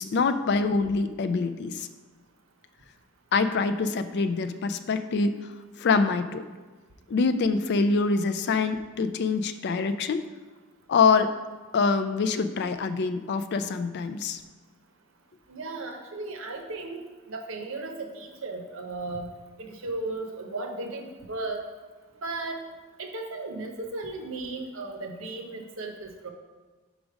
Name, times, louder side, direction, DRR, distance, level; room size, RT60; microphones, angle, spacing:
voice 1, 0.0-1.9 3.3-5.3 5.8-6.4 7.1-10.2 10.9-11.3 11.7-14.4, left 4 dB, 50° left, 10 dB, 0.3 m, -25 dB
voice 2, 15.5-19.3 19.7-21.6 22.2-22.6 23.0-26.3, right 2 dB, 65° right, 4 dB, 0.8 m, -35 dB
5.1 x 5.0 x 4.8 m, 1.3 s
head